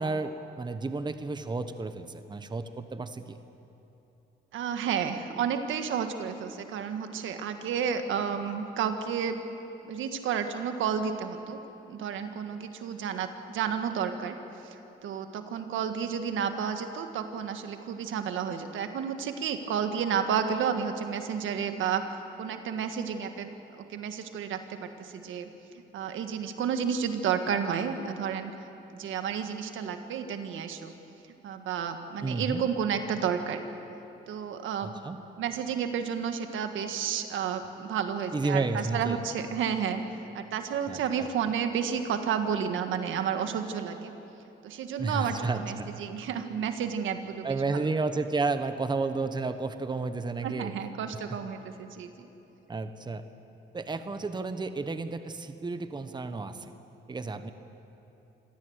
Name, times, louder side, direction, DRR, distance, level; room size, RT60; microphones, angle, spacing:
voice 1, 0.0-3.4 32.2-32.6 34.8-35.2 38.3-39.2 40.9-41.3 45.0-45.9 47.4-50.8 51.1-51.4 52.7-53.3 53.7-56.7 57.1-57.5, right 3 dB, 20° right, 9 dB, 1.1 m, -32 dB
voice 2, 4.5-9.4 9.8-11.6 11.9-14.4 15.0-25.5 25.9-28.5 28.9-30.9 31.4-33.6 34.3-34.9 35.4-40.0 40.3-44.1 44.6-47.9 50.4-52.3, right 7 dB, 80° right, 7 dB, 1.7 m, -31 dB
25.5 x 17.0 x 8.1 m, 3.0 s
cardioid pair, 90°, 20 cm